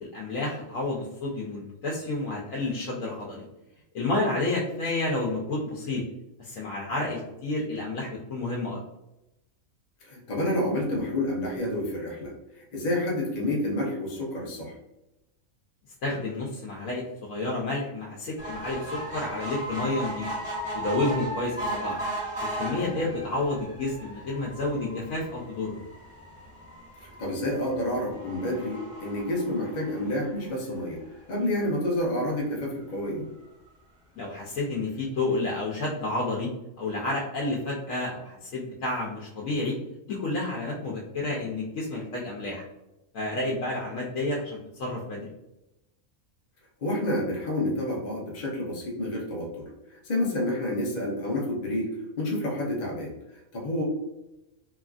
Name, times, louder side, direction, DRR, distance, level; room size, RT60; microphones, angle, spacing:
voice 1, 0.0-3.5 3.9-6.0 6.4-8.8 16.0-20.3 20.7-22.0 22.4-25.8 34.1-36.5 36.8-39.8 40.1-42.6 43.1-45.3, left 2 dB, 85° left, -3 dB, 1.0 m, -30 dB
voice 2, 10.0-14.8 27.0-31.0 31.3-33.2 46.8-53.8, left 1 dB, 40° left, -3 dB, 0.7 m, -29 dB
sound 1, 18.4-31.0 31.5-31.6 31.9-32.0 32.3-32.4, right 1 dB, 40° right, 1.4 m, -37 dB
3.0 x 2.4 x 2.3 m, 0.92 s
omnidirectional pair, 1.4 m